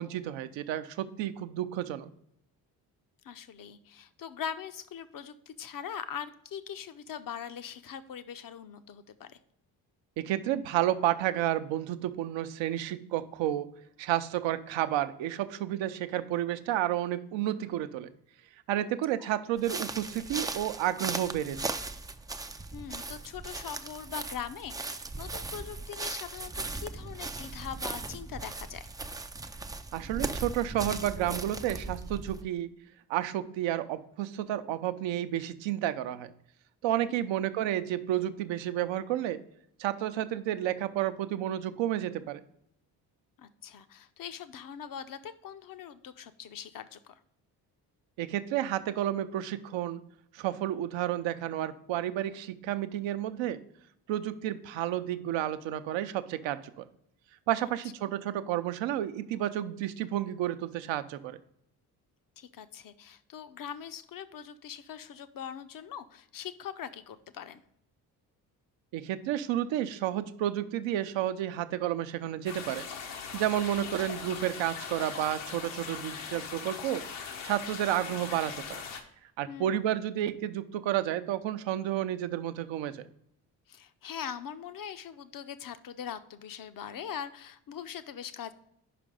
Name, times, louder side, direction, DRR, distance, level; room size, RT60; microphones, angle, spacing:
voice 1, 0.0-2.1 10.2-13.7 14.0-18.1 18.7-21.7 29.9-32.7 33.1-36.3 36.8-39.4 39.8-42.4 48.2-50.0 50.3-53.6 54.1-56.9 57.5-61.4 68.9-72.9 73.3-77.0 77.4-78.8 79.4-83.1, right 12 dB, 65° right, 12 dB, 0.6 m, -31 dB
voice 2, 3.2-9.4 18.8-18.9 22.7-28.9 37.1-37.3 43.4-47.2 62.4-67.6 79.5-79.9 83.7-88.5, left 8 dB, 45° left, 12 dB, 0.6 m, -42 dB
sound 1, 19.6-32.4, right 3 dB, 10° right, 0.3 m, -38 dB
sound 2, 72.4-79.0, left 6 dB, 75° left, 1.1 m, -40 dB
5.2 x 5.1 x 4.9 m, 0.74 s
hypercardioid pair, 50°, 48 cm